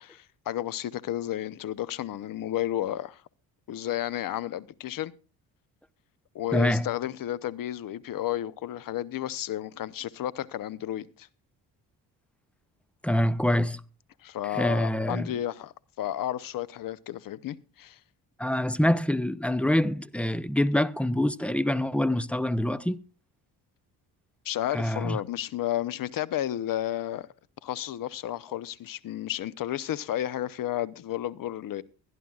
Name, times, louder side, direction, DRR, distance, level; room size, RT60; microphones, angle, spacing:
voice 1, 0.0-3.2 3.7-5.1 6.3-11.3 14.2-18.0 24.4-27.3 27.6-31.8, left 12 dB, 60° left, 0.8 m, -32 dB
voice 2, 6.5-6.9 13.0-13.8 14.5-15.3 18.4-23.0 24.7-25.2, left 1 dB, 5° left, 0.5 m, -25 dB
23.0 x 11.0 x 2.4 m
cardioid pair, 95°, 38 cm